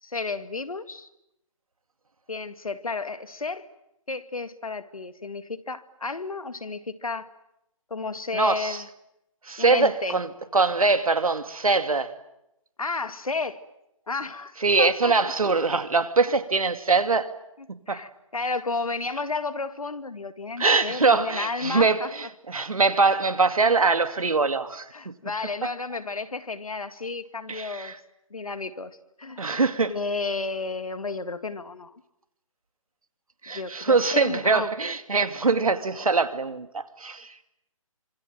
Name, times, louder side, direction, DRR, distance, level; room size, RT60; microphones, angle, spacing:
voice 1, 0.0-1.1 2.3-3.7 4.1-7.3 7.9-8.9 9.6-10.2 12.8-13.6 14.1-15.1 17.9-22.1 24.9-27.9 28.3-29.4 29.9-32.0 33.5-34.7, left 4 dB, 90° left, 2.0 m, -32 dB
voice 2, 8.3-8.8 9.4-12.1 14.6-17.3 17.9-18.0 20.6-25.1 27.5-28.0 29.4-29.9 33.4-37.5, right 4 dB, 85° right, 2.5 m, -23 dB
26.0 x 25.0 x 9.1 m
hypercardioid pair, 155°, 18 cm